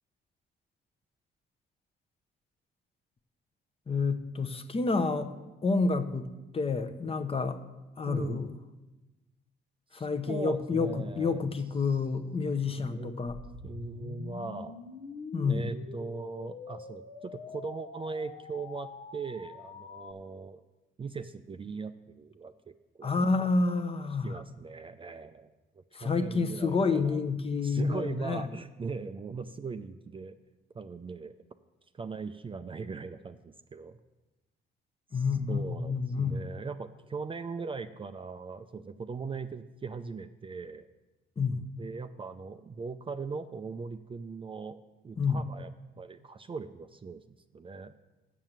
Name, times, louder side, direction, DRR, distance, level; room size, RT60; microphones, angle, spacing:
voice 1, 3.9-5.3 5.6-6.3 6.5-7.6 8.0-8.5 9.9-13.4 15.3-15.7 23.0-24.4 25.9-28.5 35.1-36.5 41.4-41.7 45.2-45.4, left 4 dB, 30° left, 8 dB, 0.7 m, -29 dB
voice 2, 8.1-8.4 9.9-11.5 12.6-13.2 13.6-14.8 15.5-20.6 21.0-23.1 24.2-27.2 27.6-30.3 30.7-31.3 31.9-34.0 35.1-40.9 41.8-45.7 46.0-47.2 47.5-47.9, right 4 dB, 25° right, 9 dB, 0.4 m, -40 dB
sound 1, 13.3-20.1, left 5 dB, 70° left, 0.8 m, -45 dB
7.3 x 6.7 x 7.4 m, 1.1 s
cardioid pair, 90°, 20 cm